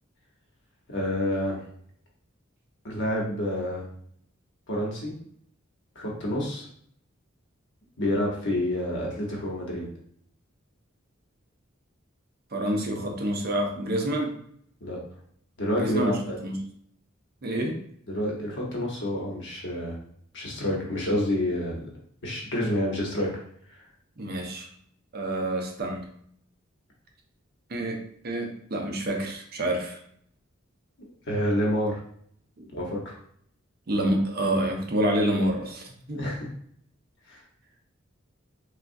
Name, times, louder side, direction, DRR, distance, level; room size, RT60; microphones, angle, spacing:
voice 1, 0.9-1.6 2.8-3.9 4.7-5.1 5.9-6.7 8.0-9.9 14.8-15.0 15.6-16.4 18.1-20.0 20.3-21.8 22.2-23.3 23.7-23.8 31.3-32.0 32.7-33.2 36.1-36.5 37.3-37.4, left 1 dB, 60° left, -2 dB, 0.9 m, -28 dB
voice 2, 12.5-14.4 15.7-16.6 17.4-17.8 24.2-24.7 25.1-26.1 27.7-28.0 28.2-30.0 32.6-32.7 33.9-36.2, right 1 dB, 50° right, 2 dB, 0.6 m, -28 dB
3.5 x 2.3 x 2.6 m, 0.63 s
head